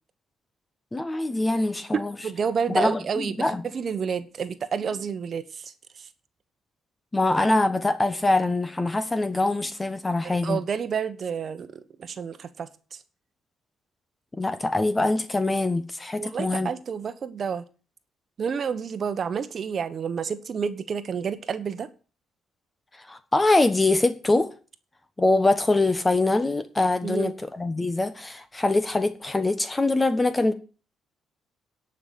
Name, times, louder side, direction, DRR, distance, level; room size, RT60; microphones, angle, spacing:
voice 1, 0.9-2.1 2.7-3.6 7.1-10.6 14.4-16.7 23.0-24.5 25.2-30.5, left 2 dB, 20° left, 1.2 m, -23 dB
voice 2, 1.9-6.1 10.2-13.0 16.2-17.6 18.4-21.9 27.0-27.3, right 6 dB, 50° right, 1.1 m, -30 dB
10.5 x 5.8 x 8.4 m
cardioid pair, 90°, 0 cm